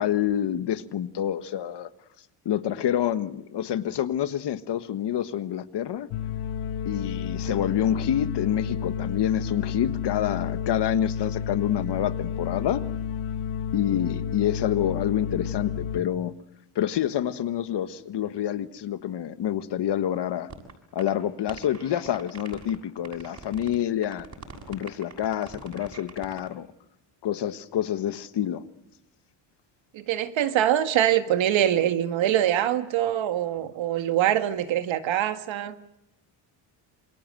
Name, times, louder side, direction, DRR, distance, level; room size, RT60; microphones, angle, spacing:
voice 1, 0.0-1.9 2.4-6.1 6.8-12.8 13.7-16.3 16.7-20.5 20.9-24.3 24.7-26.7 27.2-28.6, left 10 dB, 55° left, 1.5 m, -27 dB
sound 1, 6.1-16.0, left 8 dB, 75° left, 1.4 m, -31 dB
sound 2, 20.5-20.7 21.0-21.1 21.5-22.8 23.0-23.8 24.0-26.5, right 4 dB, 35° right, 6.8 m, -43 dB
voice 2, 29.9-35.8, right 11 dB, 65° right, 1.9 m, -24 dB
28.0 x 22.0 x 7.7 m
cardioid pair, 105°, 50 cm